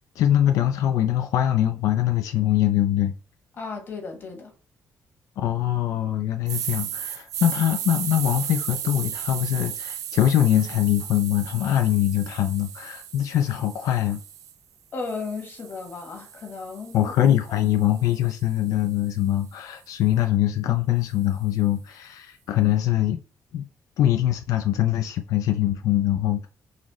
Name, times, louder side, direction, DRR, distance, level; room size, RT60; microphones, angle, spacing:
voice 1, 0.2-3.1 5.4-14.2 16.9-23.2 23.5-23.6 24.0-26.5, left 12 dB, 85° left, 0.4 m, -23 dB
voice 2, 3.5-4.5 14.9-17.1 17.5-17.7, left 4 dB, 40° left, 1.2 m, -35 dB
sound 1, 6.5-14.5 15.0-19.2, right 10 dB, 90° right, 0.5 m, -36 dB
4.0 x 3.0 x 3.0 m
cardioid pair, 175°, 6 cm